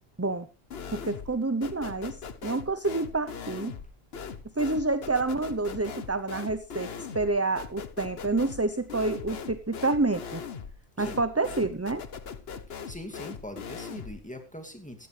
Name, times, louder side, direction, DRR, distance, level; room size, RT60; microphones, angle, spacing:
sound 1, 0.7-1.4 1.6-14.2, left 6 dB, 65° left, 1.3 m, -40 dB
voice 1, 0.9-3.8 4.5-10.4 11.0-12.0, right 3 dB, 15° right, 11 dB, 0.7 m, -28 dB
voice 2, 12.9-15.1, left 1 dB, 5° left, 4 dB, 2.5 m, -42 dB
16.5 x 14.0 x 3.4 m, 0.32 s
omnidirectional pair, 1.1 m